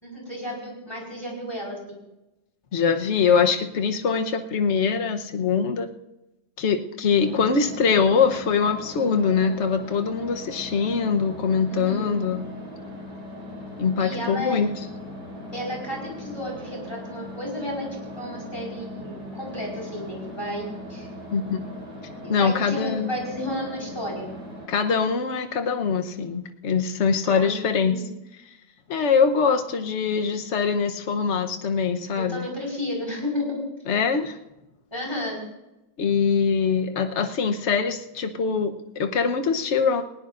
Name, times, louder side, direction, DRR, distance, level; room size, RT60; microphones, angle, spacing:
voice 1, 0.0-2.0 11.7-12.1 14.0-14.6 15.5-17.9 18.2-21.1 22.2-24.3 27.2-28.0 32.2-33.6 34.9-35.4, left 1 dB, 15° left, -2 dB, 4.7 m, -32 dB
voice 2, 2.7-5.9 6.6-12.5 13.8-14.7 21.3-21.7 22.3-23.1 24.7-28.0 28.9-32.5 33.9-34.4 36.0-40.0, left 6 dB, 45° left, 6 dB, 1.1 m, -23 dB
sound 1, 7.2-24.6, left 1 dB, 55° right, 7.5 m, -39 dB
19.5 x 18.5 x 2.6 m, 0.95 s
omnidirectional pair, 2.0 m